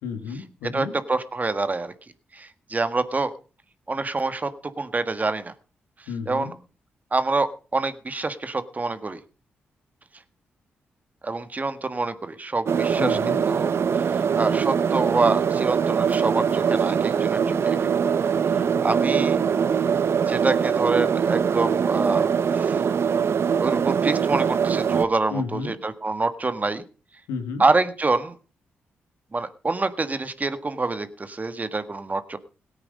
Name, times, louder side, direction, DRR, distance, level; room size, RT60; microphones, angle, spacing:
voice 1, 0.0-0.9 6.1-6.5 13.0-13.4 25.3-25.7 27.3-27.6, left 4 dB, 90° left, 6 dB, 1.9 m, -31 dB
voice 2, 0.7-1.9 2.3-3.3 3.9-4.5 4.8-5.5 6.3-6.5 7.1-9.2 11.2-13.2 13.5-17.8 18.5-19.4 20.3-22.8 23.6-26.8 27.6-28.4 29.3-32.4, right 3 dB, 35° right, 11 dB, 1.6 m, -26 dB
sound 1, 12.7-25.0, right 7 dB, 60° right, 0.8 m, -22 dB
17.0 x 9.0 x 5.4 m, 0.36 s
supercardioid pair, 45°, 5 cm